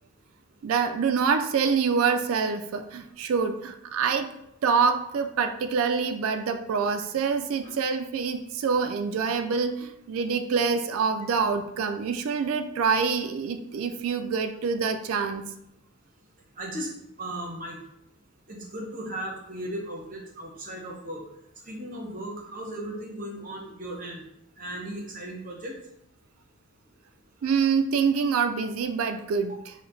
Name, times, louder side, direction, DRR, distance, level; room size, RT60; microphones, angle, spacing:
voice 1, 0.6-4.3 4.6-15.4 27.4-29.7, right 5 dB, 65° right, 7 dB, 0.3 m, -26 dB
voice 2, 16.6-16.9 17.2-17.8 18.5-21.2 21.7-24.2 24.6-25.7, right 1 dB, 40° right, 0 dB, 0.8 m, -36 dB
4.8 x 2.2 x 3.9 m, 0.79 s
head